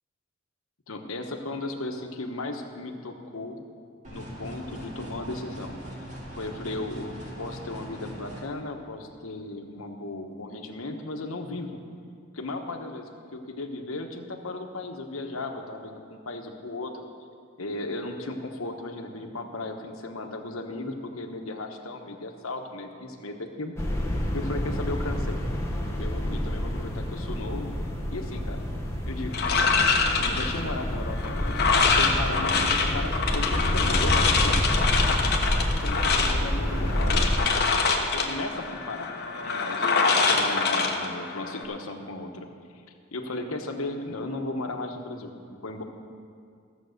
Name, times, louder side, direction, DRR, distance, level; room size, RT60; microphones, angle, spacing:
voice 1, 0.9-3.6 4.1-5.8 6.3-11.8 12.3-16.9 17.6-23.7 24.3-25.4 26.0-27.7 28.1-28.6 29.1-29.5 30.2-34.7 35.0-35.2 35.7-37.6 38.0-39.1 39.4-42.5 43.1-45.8, left 2 dB, 80° left, 4 dB, 1.2 m, -36 dB
sound 1, 4.0-8.4, right 1 dB, 35° right, 2.1 m, -40 dB
sound 2, 23.8-37.4, equal, 15° left, 1.3 m, -28 dB
sound 3, 29.3-41.6, left 4 dB, 50° left, 1.2 m, -25 dB
15.0 x 7.3 x 6.6 m, 2.3 s
head